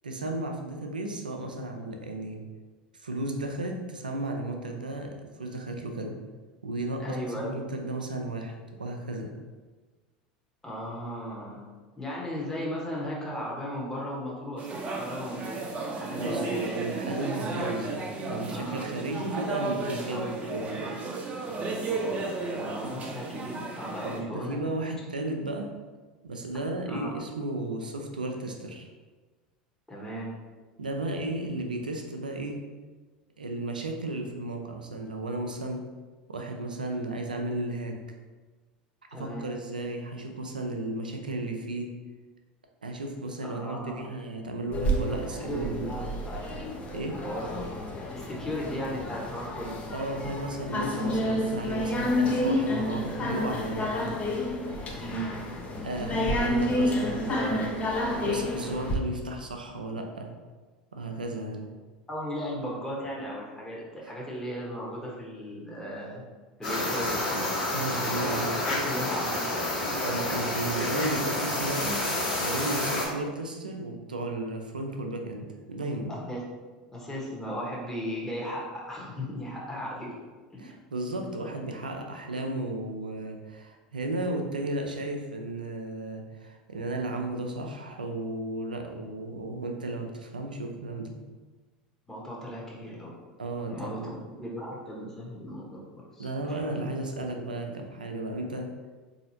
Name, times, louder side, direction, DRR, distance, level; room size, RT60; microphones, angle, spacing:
voice 1, 0.0-2.4 2.9-6.2 6.6-9.3 16.1-20.9 22.8-22.9 24.0-25.7 26.2-28.9 30.8-32.6 33.4-35.8 36.3-38.0 39.1-41.9 42.8-45.9 46.9-47.2 49.9-54.1 55.8-57.6 58.2-60.3 60.9-61.7 64.0-64.1 67.7-68.5 70.0-72.0 72.4-76.1 80.6-91.1 93.4-94.1 96.2-98.7, right 2 dB, 85° right, 3 dB, 0.4 m, -34 dB
voice 2, 7.0-7.6 10.6-11.6 12.0-14.7 14.9-15.6 15.9-16.8 18.5-18.9 20.1-20.3 21.5-22.3 22.5-24.6 26.9-27.1 29.9-30.3 39.1-39.5 43.4-44.1 45.0-45.1 45.5-46.8 47.1-47.6 48.1-49.8 55.0-55.3 62.1-66.2 66.6-67.5 68.1-70.4 76.1-76.4 76.9-80.1 80.5-80.6 92.1-93.1 93.7-94.0 94.4-95.8 96.1-96.9 97.7-97.8, equal, 10° left, -5 dB, 1.0 m, -36 dB
sound 1, 14.6-24.2, right 3 dB, 30° right, 0.7 m, -34 dB
sound 2, 44.7-59.0, left 1 dB, 30° left, 0.6 m, -30 dB
sound 3, 66.6-73.1, left 1 dB, 75° left, 1.3 m, -29 dB
3.9 x 2.8 x 2.7 m, 1.3 s
figure-of-eight pair, 80°, 4 cm